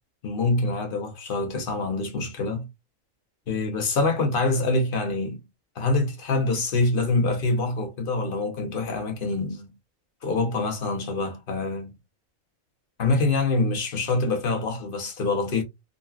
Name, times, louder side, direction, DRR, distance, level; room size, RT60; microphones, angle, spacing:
voice 1, 0.2-2.7 3.5-5.4 5.8-9.7 10.2-11.9 13.0-15.6, left 3 dB, 50° left, 0.7 m, -25 dB
3.8 x 2.2 x 2.2 m
omnidirectional pair, 1.4 m